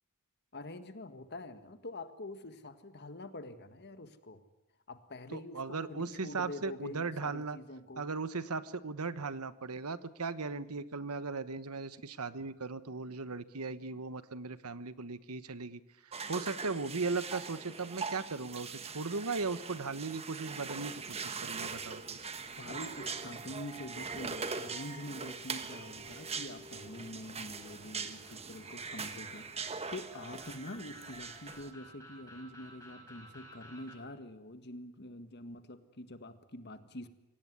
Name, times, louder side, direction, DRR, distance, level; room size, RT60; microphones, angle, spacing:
voice 1, 0.5-4.4 4.9-8.1 22.6-37.1, left 1 dB, 50° left, 10 dB, 1.8 m, -46 dB
voice 2, 5.3-7.6 8.0-22.2, right 4 dB, 85° right, 14 dB, 1.2 m, -38 dB
sound 1, 16.1-31.7, right 5 dB, 30° right, 1.4 m, -42 dB
sound 2, 27.5-34.0, equal, 15° left, 6.2 m, -55 dB
25.0 x 18.0 x 9.6 m, 0.94 s
head